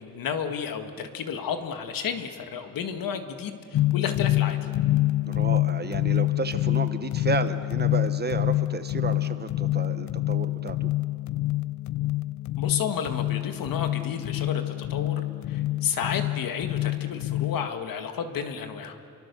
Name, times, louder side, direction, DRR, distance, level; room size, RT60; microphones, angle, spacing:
voice 1, 0.0-4.6 12.6-15.2 15.5-19.0, left 7 dB, 75° left, 7 dB, 1.9 m, -32 dB
sound 1, 3.7-17.7, left 16 dB, 60° left, 0.5 m, -27 dB
voice 2, 5.2-10.9, right 4 dB, 30° right, 10 dB, 1.1 m, -32 dB
29.5 x 24.0 x 6.9 m, 2.7 s
wide cardioid pair, 150°, 34 cm